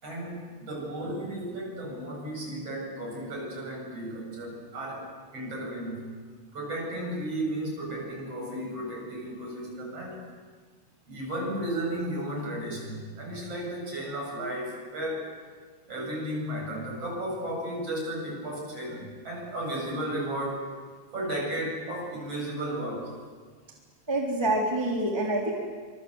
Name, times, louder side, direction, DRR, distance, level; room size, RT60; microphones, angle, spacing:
voice 1, 0.0-6.1 6.5-10.2 11.1-15.3 15.9-20.6 21.1-23.2, right 1 dB, 50° right, -1 dB, 9.1 m, -34 dB
voice 2, 24.1-25.5, right 1 dB, 10° right, -2 dB, 3.5 m, -26 dB
28.5 x 26.0 x 8.1 m, 1.5 s
omnidirectional pair, 3.6 m